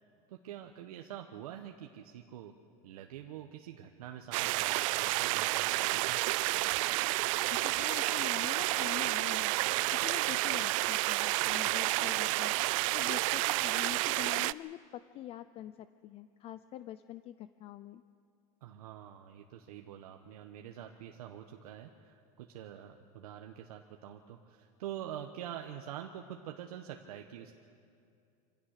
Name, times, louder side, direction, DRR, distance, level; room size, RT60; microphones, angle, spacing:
voice 1, 0.3-2.5 2.8-6.2 11.6-11.8 18.6-27.5, right 10 dB, 85° right, 4 dB, 1.2 m, -46 dB
sound 1, 4.3-14.5, right 21 dB, 60° right, 0.4 m, -30 dB
voice 2, 7.5-12.5 12.9-18.0, left 13 dB, 30° left, 13 dB, 0.4 m, -45 dB
25.5 x 16.5 x 6.6 m, 2.5 s
supercardioid pair, 140°, 19 cm